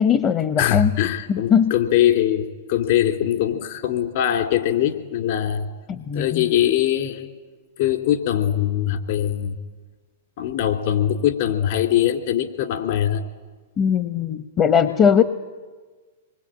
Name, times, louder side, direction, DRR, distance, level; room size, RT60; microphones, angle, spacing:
voice 1, 0.0-0.9 1.3-1.7 6.0-6.4 13.8-15.2, left 7 dB, 30° left, 10 dB, 1.0 m, -19 dB
voice 2, 0.6-5.7 6.1-7.3 7.8-9.6 10.4-13.2, left 11 dB, 55° left, 5 dB, 2.9 m, -22 dB
26.0 x 21.5 x 9.0 m, 1.4 s
hypercardioid pair, 105°, 0 cm